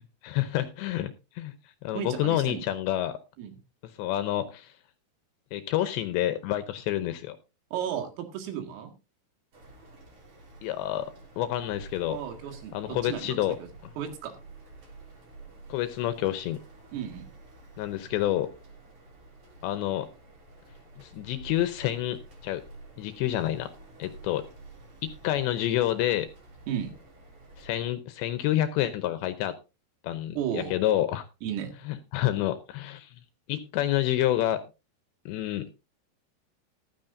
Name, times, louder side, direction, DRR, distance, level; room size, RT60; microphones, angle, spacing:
voice 1, 0.0-1.6 1.8-3.2 4.0-4.7 5.5-7.4 10.6-11.1 11.4-12.2 12.7-13.6 15.7-16.6 17.8-18.5 19.6-20.1 21.0-22.2 22.4-22.6 23.0-23.7 24.0-24.5 25.0-26.3 27.6-29.6 30.0-31.2 31.9-33.1 33.5-34.6 35.3-35.7, left 13 dB, 80° left, 11 dB, 2.7 m, -28 dB
voice 2, 1.9-2.7 3.4-3.5 7.7-8.9 12.1-13.7 14.0-14.3 16.9-17.3 26.7-26.9 30.4-30.7 31.4-31.7, right 9 dB, 85° right, 5 dB, 4.7 m, -34 dB
sound 1, 9.5-27.9, right 2 dB, 40° right, 4.7 m, -50 dB
14.5 x 12.5 x 2.6 m, 0.28 s
omnidirectional pair, 5.8 m